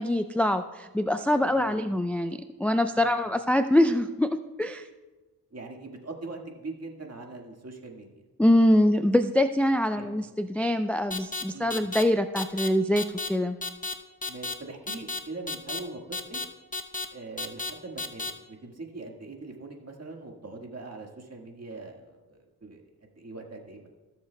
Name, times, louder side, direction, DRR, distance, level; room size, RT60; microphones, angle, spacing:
voice 1, 0.0-4.8 8.4-13.6, left 1 dB, 5° left, 9 dB, 0.4 m, -24 dB
voice 2, 1.5-1.8 3.0-3.1 5.5-8.2 9.9-10.1 11.5-11.9 14.3-16.4 17.1-23.9, right 3 dB, 40° right, 1 dB, 1.8 m, -42 dB
sound 1, 11.1-11.4 11.7-12.0 12.4-12.7 13.0-13.3 13.6-13.9 14.2-14.5 14.9-15.2 15.5-15.8 16.1-16.4 16.7-17.1 17.4-17.7 18.0-18.3, left 3 dB, 20° left, 0.8 m, -32 dB
17.0 x 6.9 x 2.3 m, 1.2 s
cardioid pair, 50°, 38 cm